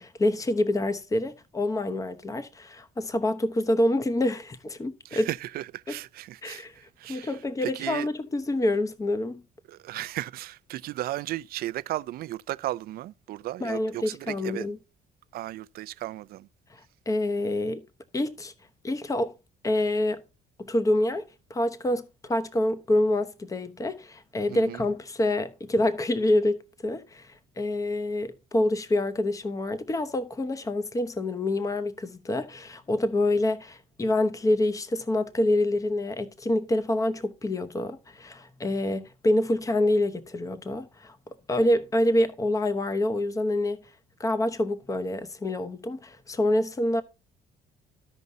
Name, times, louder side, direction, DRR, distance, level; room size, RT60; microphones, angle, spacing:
voice 1, 0.0-5.3 5.9-6.0 6.4-6.7 7.1-9.4 13.6-14.8 17.1-17.8 18.1-18.5 18.8-19.3 19.6-20.2 20.6-41.2 41.5-43.8 44.2-47.0, left 1 dB, 20° left, 0.9 m, -27 dB
voice 2, 5.0-7.3 7.6-8.1 9.7-14.7 15.3-16.5 24.5-24.8, right 15 dB, 65° right, 0.4 m, -35 dB
15.0 x 5.3 x 2.6 m
cardioid pair, 110°, 17 cm